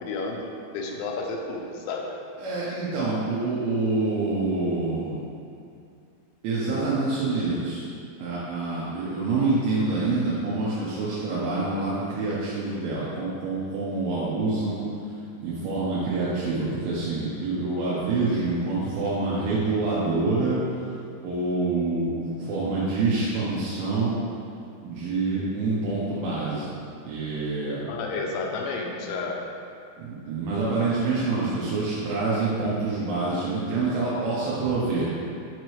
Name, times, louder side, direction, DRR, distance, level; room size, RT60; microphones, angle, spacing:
voice 1, 0.0-2.1 27.8-29.4, left 3 dB, 85° left, 1 dB, 3.0 m, -31 dB
voice 2, 2.4-5.2 6.4-7.8 8.2-15.1 15.4-20.6 20.9-21.0 21.2-24.2 24.8-26.8 27.1-27.9 30.0-35.2, right 3 dB, 85° right, -9 dB, 3.4 m, -26 dB
8.0 x 4.7 x 3.1 m, 2.4 s
omnidirectional pair, 5.4 m